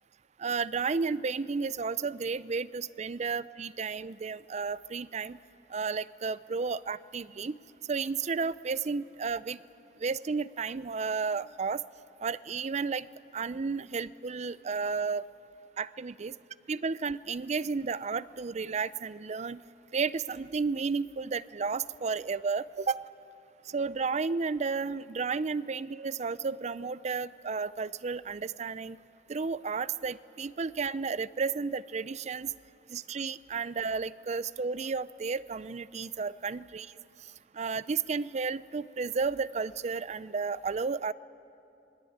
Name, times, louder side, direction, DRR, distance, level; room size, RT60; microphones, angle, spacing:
voice 1, 0.4-5.4 5.7-7.5 7.9-9.6 10.0-11.8 12.2-13.1 13.3-15.2 15.8-16.3 16.7-19.6 19.9-23.0 23.7-29.0 29.3-32.5 32.9-36.9 37.5-41.1, right 5 dB, 40° right, 17 dB, 0.5 m, -32 dB
25.5 x 20.5 x 8.7 m, 2.8 s
head